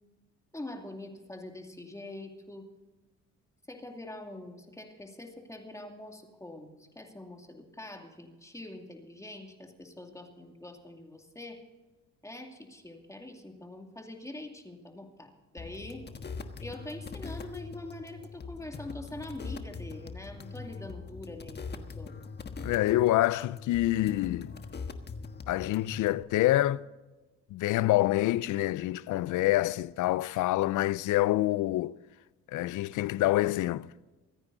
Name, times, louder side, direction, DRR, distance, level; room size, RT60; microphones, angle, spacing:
voice 1, 0.5-2.7 3.7-11.6 12.2-16.0 16.6-22.2, left 1 dB, 10° left, 2.5 m, -44 dB
sound 1, 15.6-26.2, left 4 dB, 35° left, 1.3 m, -42 dB
voice 2, 22.6-24.5 25.5-26.8 27.5-32.0 32.5-33.9, left 16 dB, 80° left, 0.5 m, -26 dB
24.5 x 9.7 x 4.0 m
cardioid pair, 90°, 30 cm